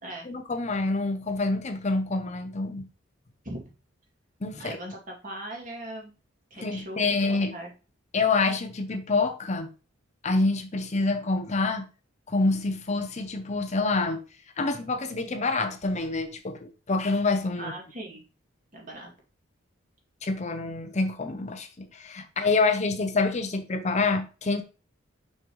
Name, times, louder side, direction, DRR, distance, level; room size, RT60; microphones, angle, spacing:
voice 1, 0.3-2.9 4.4-4.8 6.6-7.5 8.1-9.7 10.2-11.9 12.3-14.2 14.6-17.7 20.2-24.6, left 3 dB, 35° left, 0.6 m, -27 dB
voice 2, 4.6-6.1 6.5-7.7 17.6-18.2 18.7-19.1, right 1 dB, 40° right, 2.4 m, -39 dB
6.0 x 5.2 x 3.1 m
head